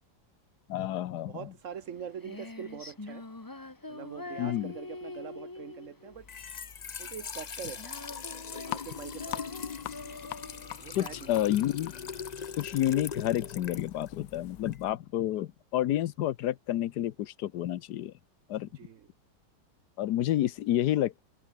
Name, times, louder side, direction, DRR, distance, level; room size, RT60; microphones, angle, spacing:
voice 1, 0.7-1.3 4.4-4.7 10.9-11.9 12.6-18.1 18.5-18.7 20.0-21.2, left 13 dB, 70° left, 1.3 m, -29 dB
voice 2, 1.3-3.3 3.9-6.3 7.0-7.8 8.5-9.6 10.8-11.3 18.7-19.1, right 8 dB, 55° right, 1.1 m, -43 dB
Female singing, 1.7-12.7, left 2 dB, 15° left, 1.0 m, -45 dB
Trickle dribble / Fill (with liquid), 6.1-14.9, left 6 dB, 50° left, 0.4 m, -41 dB
sound 1, 8.6-14.8, left 17 dB, 90° left, 1.3 m, -44 dB
omnidirectional pair, 1.9 m